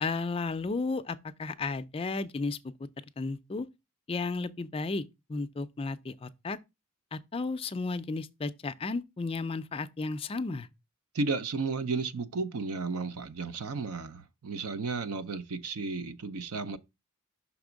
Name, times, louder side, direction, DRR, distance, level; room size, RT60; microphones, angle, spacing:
voice 1, 0.0-2.9 3.2-3.7 4.1-6.6 7.1-10.7, left 3 dB, 25° left, 0.4 m, -33 dB
voice 2, 11.1-16.8, right 4 dB, 75° right, 0.6 m, -33 dB
6.0 x 3.5 x 5.0 m
head